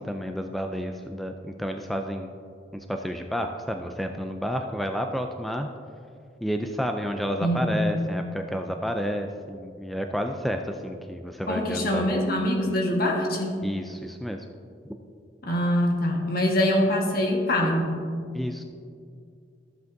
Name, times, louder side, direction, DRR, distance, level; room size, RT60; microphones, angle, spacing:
voice 1, 0.0-2.3 2.7-5.7 6.4-12.2 13.6-14.4 14.9-15.0 18.3-18.6, equal, ahead, 4 dB, 0.3 m, -30 dB
voice 2, 7.4-7.8 11.5-13.6 15.4-18.1, left 1 dB, 60° left, 0 dB, 1.4 m, -24 dB
13.5 x 7.8 x 2.6 m, 2.3 s
head